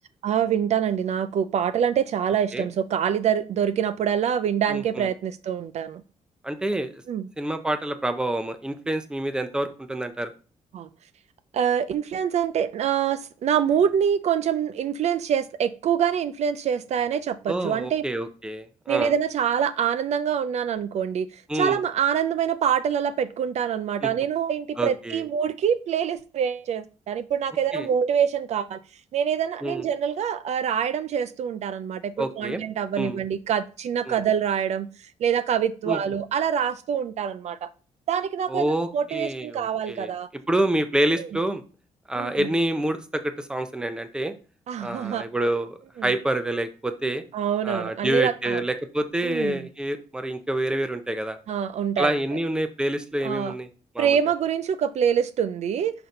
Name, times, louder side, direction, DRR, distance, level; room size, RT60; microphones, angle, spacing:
voice 1, 0.2-6.0 7.1-7.3 10.7-10.9 11.5-18.0 18.9-28.8 29.1-34.9 35.2-37.7 38.1-40.3 42.2-42.5 44.7-45.3 46.0-46.1 47.3-48.6 49.2-49.7 51.5-52.1 53.2-53.5 54.0-55.9, right 8 dB, 60° right, 0.4 m, -25 dB
voice 2, 4.7-5.1 6.4-7.0 7.4-10.3 17.5-19.1 21.5-21.8 24.0-24.1 24.8-25.3 27.7-27.9 29.6-29.8 32.2-32.6 33.0-33.2 34.1-34.2 35.9-36.0 38.5-40.1 40.5-41.6 42.1-44.3 44.8-47.2 47.6-51.4 52.0-53.7 53.9-54.2, right 1 dB, 5° right, 0.6 m, -27 dB
6.0 x 4.0 x 5.2 m
cardioid pair, 160°, 13 cm